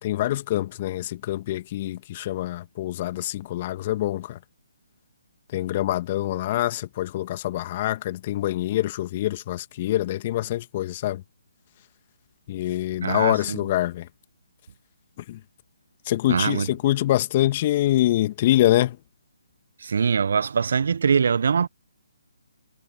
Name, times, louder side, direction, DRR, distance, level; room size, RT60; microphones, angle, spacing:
voice 1, 0.0-4.4 5.5-11.2 12.5-14.1 15.2-15.4 16.1-19.0, left 14 dB, 35° left, 2.0 m, -25 dB
voice 2, 13.0-13.6 16.3-16.7 19.8-21.7, right 6 dB, 55° right, 0.9 m, -22 dB
figure-of-eight pair, 140°, 0 cm